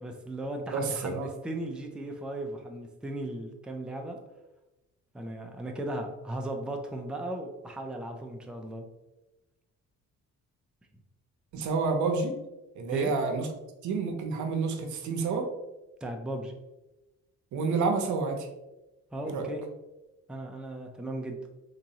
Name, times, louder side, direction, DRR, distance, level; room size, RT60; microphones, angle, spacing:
voice 1, 0.0-4.2 5.1-8.8 12.9-13.2 16.0-16.6 19.1-19.6 20.3-21.4, right 1 dB, 5° right, 3 dB, 0.4 m, -36 dB
voice 2, 0.7-1.3 11.5-12.3 12.8-13.5 13.8-15.5 17.5-18.5 19.2-19.5, right 4 dB, 75° right, 4 dB, 0.7 m, -29 dB
3.5 x 3.0 x 2.8 m, 1.0 s
cardioid pair, 90°, 30 cm